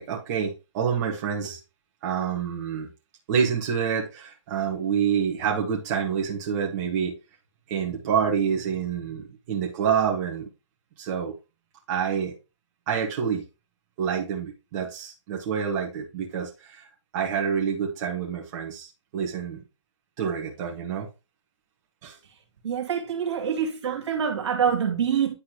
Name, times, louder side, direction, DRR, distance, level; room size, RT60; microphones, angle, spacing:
voice 1, 0.0-1.6 2.0-2.9 3.3-7.1 7.7-10.5 11.0-11.3 11.9-12.3 12.9-13.4 14.0-16.8 17.1-19.6 20.2-21.1 22.0-22.2 23.4-23.5, right 7 dB, 35° right, 1.7 m, -27 dB
voice 2, 22.6-25.3, right 7 dB, 65° right, 2.5 m, -25 dB
10.0 x 4.3 x 3.0 m
hypercardioid pair, 150°, 16 cm